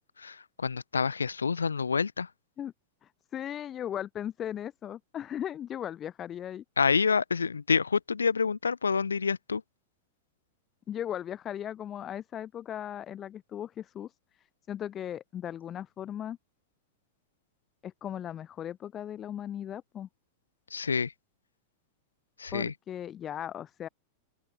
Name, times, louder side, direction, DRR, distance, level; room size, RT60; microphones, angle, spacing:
voice 1, 0.2-2.3 6.8-9.6 20.7-21.1 22.4-22.7, left 5 dB, 75° left, 0.7 m, -27 dB
voice 2, 3.0-6.6 10.9-14.1 14.7-16.4 17.8-20.1 22.5-23.9, left 10 dB, 25° left, 0.4 m, -37 dB
open air
figure-of-eight pair, 90°, 0 cm